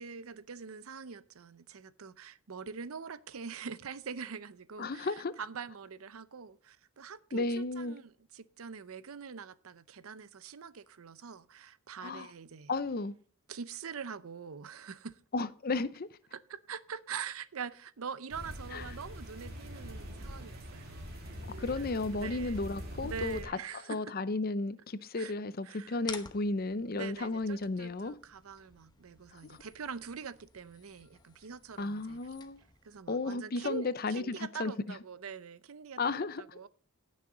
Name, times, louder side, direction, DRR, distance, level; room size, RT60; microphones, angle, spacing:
voice 1, 0.0-12.7 13.5-15.2 16.3-22.6 23.0-24.1 25.2-25.3 25.6-26.0 26.9-32.3 32.8-36.7, right 6 dB, 80° right, 0.6 m, -44 dB
voice 2, 4.8-5.3 7.3-8.0 12.0-12.3 12.7-13.1 15.3-16.1 18.7-18.8 21.6-23.4 23.9-28.1 29.5-29.6 31.8-32.6 33.1-34.7 36.0-36.4, left 3 dB, 45° left, 0.6 m, -33 dB
sound 1, 18.3-23.4, equal, 45° right, 2.7 m, -43 dB
sound 2, 26.0-33.0, left 5 dB, 20° left, 0.9 m, -51 dB
17.5 x 6.4 x 3.8 m
head